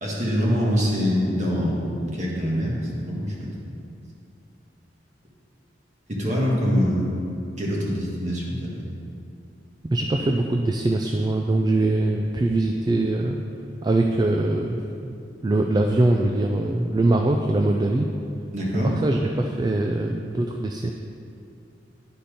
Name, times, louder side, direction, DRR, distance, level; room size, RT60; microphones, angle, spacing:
voice 1, 0.0-3.5 6.1-7.1 7.6-9.0 18.5-19.0, equal, 40° right, -4 dB, 1.6 m, -24 dB
voice 2, 9.8-13.4 13.8-15.2 15.4-18.1 18.8-20.9, right 2 dB, 25° right, 2 dB, 0.3 m, -22 dB
10.0 x 4.3 x 5.1 m, 2.6 s
head